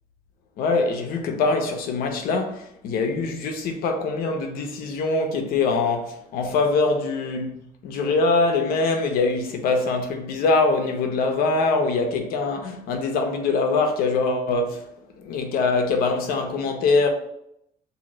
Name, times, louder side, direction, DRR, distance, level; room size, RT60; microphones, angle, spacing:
voice 1, 0.6-7.5 7.8-14.8 15.2-17.1, left 3 dB, 75° left, 0.8 m, -23 dB
3.0 x 2.8 x 3.9 m
cardioid pair, 150°, 15 cm